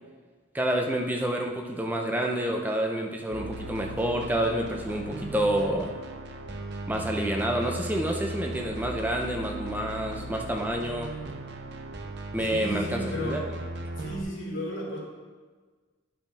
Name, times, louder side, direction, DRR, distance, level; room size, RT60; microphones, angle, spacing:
voice 1, 0.5-5.9 6.9-11.1 12.3-13.4, right 1 dB, 10° right, 2 dB, 0.6 m, -28 dB
sound 1, 3.3-14.2, right 2 dB, 55° right, 0.6 m, -38 dB
voice 2, 12.4-13.5 14.0-15.0, equal, 65° left, -5 dB, 2.3 m, -34 dB
10.0 x 5.7 x 3.5 m, 1.4 s
head